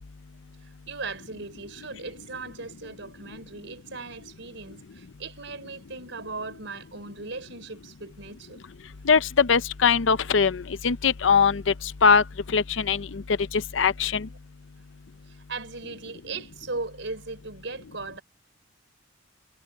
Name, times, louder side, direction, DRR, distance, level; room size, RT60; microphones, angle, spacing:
voice 1, 0.9-8.6 15.3-18.2, right 3 dB, 70° right, 5.3 m, -38 dB
voice 2, 9.1-11.7 12.0-12.2 12.5-13.2 13.5-14.3, left 6 dB, 85° left, 0.6 m, -21 dB
head